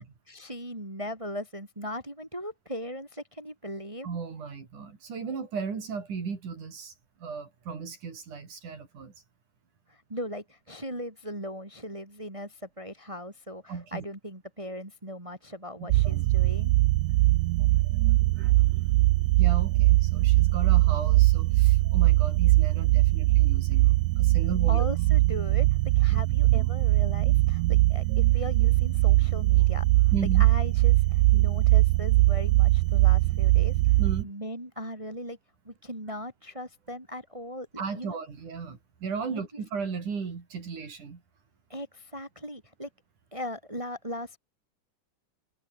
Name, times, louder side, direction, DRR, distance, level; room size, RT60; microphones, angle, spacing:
voice 1, 0.0-4.1 9.9-16.7 24.7-35.4 35.6-37.7 38.0-38.2 41.7-42.9 43.3-44.4, equal, 10° right, 4.6 m, -39 dB
voice 2, 4.0-6.9 7.2-9.1 13.7-14.0 15.8-16.3 17.6-18.7 19.3-24.9 26.1-26.2 30.1-30.5 34.0-34.3 37.8-41.2, right 5 dB, 65° right, 5.5 m, -36 dB
sound 1, 15.9-34.2, right 19 dB, 85° right, 1.5 m, -21 dB
omnidirectional pair, 3.8 m